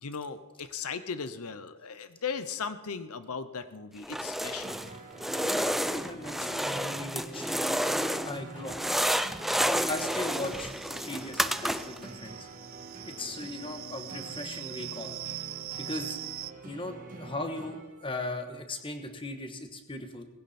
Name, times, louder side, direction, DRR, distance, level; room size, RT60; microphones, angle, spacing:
voice 1, 0.0-4.8, left 6 dB, 80° left, 12 dB, 0.8 m, -37 dB
sound 1, 4.0-4.9 5.2-8.4 8.6-12.1, equal, ahead, 0.4 m, -30 dB
sound 2, 4.4-18.2, right 2 dB, 35° right, 2.3 m, -46 dB
voice 2, 5.4-7.6 8.2-9.0 9.9-10.7 11.0-12.5 13.0-15.2 15.8-16.2 16.6-17.8 18.0-20.2, left 2 dB, 25° left, 6 dB, 1.3 m, -38 dB
sound 3, 9.8-16.5, right 14 dB, 60° right, 0.5 m, -42 dB
18.5 x 16.0 x 4.3 m, 1.2 s
head